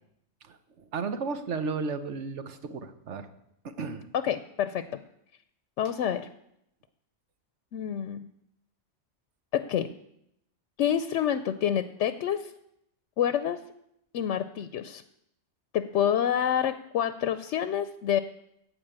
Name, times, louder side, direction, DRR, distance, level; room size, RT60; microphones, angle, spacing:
voice 1, 0.4-3.3 3.6-4.1, right 4 dB, 80° right, 9 dB, 1.3 m, -34 dB
voice 2, 4.1-5.0 5.8-6.3 7.7-8.3 9.5-9.9 10.8-12.5 13.2-13.6 14.1-15.0 15.7-18.2, left 9 dB, 85° left, 12 dB, 0.9 m, -27 dB
15.0 x 5.1 x 8.8 m, 0.78 s
omnidirectional pair, 1.2 m